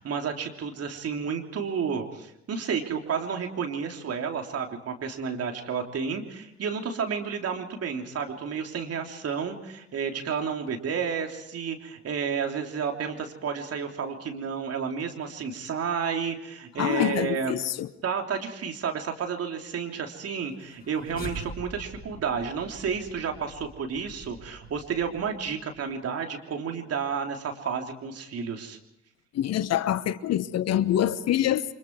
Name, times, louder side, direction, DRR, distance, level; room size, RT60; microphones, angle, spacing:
voice 1, 0.0-17.5 18.0-28.8, right 6 dB, 50° right, 3.3 m, -31 dB
voice 2, 16.8-17.9 29.3-31.6, left 11 dB, 55° left, 1.1 m, -25 dB
sound 1, 20.5-25.8, left 1 dB, 30° left, 6.4 m, -44 dB
29.5 x 25.0 x 4.7 m
hypercardioid pair, 50°, 32 cm